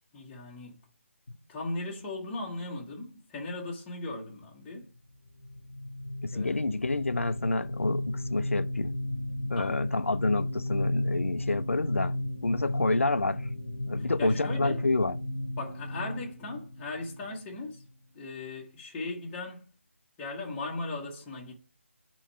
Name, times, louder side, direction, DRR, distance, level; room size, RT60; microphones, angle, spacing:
voice 1, 0.1-0.8 1.5-4.9 6.3-6.6 9.5-9.8 14.0-14.8 15.6-17.8 18.1-19.7 20.2-21.6, left 2 dB, 10° left, 1.2 m, -38 dB
sound 1, 5.4-17.8, left 1 dB, 50° left, 1.1 m, -34 dB
voice 2, 6.2-9.0 9.5-13.5 13.9-15.2, left 2 dB, 70° left, 0.5 m, -29 dB
8.3 x 3.1 x 4.4 m
figure-of-eight pair, 150°, 7 cm